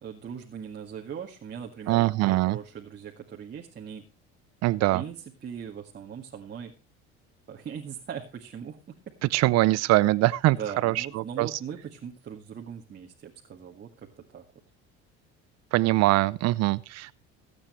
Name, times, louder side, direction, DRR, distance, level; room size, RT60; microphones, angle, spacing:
voice 1, 0.0-4.1 4.9-5.2 5.4-6.7 7.5-8.8 10.5-14.4, right 8 dB, 35° right, 0 dB, 2.0 m, -40 dB
voice 2, 1.9-2.6 4.6-5.0 9.3-10.6 10.8-11.5 15.7-17.1, right 18 dB, 60° right, 19 dB, 0.6 m, -23 dB
23.0 x 8.8 x 3.2 m, 0.28 s
supercardioid pair, 105°, 30 cm